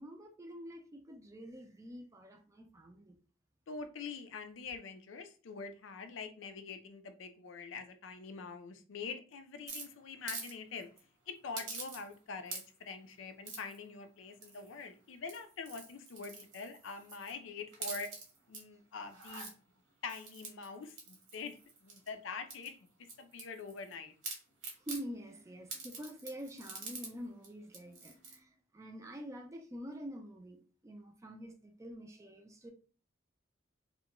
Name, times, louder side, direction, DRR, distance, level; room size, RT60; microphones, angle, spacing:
voice 1, 0.0-3.2 24.8-32.7, equal, 15° right, 0.4 m, -47 dB
voice 2, 3.7-10.9 11.3-18.1 18.5-19.5 20.0-22.7 23.0-24.1, left 5 dB, 90° left, 0.4 m, -45 dB
sound 1, 9.7-10.5 10.8-11.0 11.5-12.2 12.4-12.9 13.4-13.8 14.4-14.8 15.2-17.3 17.7-18.6 19.0-19.5 20.1-22.1 22.5-23.9 24.2-25.0 25.7-27.1 27.4-27.5 27.7-28.4, right 4 dB, 90° right, 1.0 m, -45 dB
2.4 x 2.1 x 2.9 m
head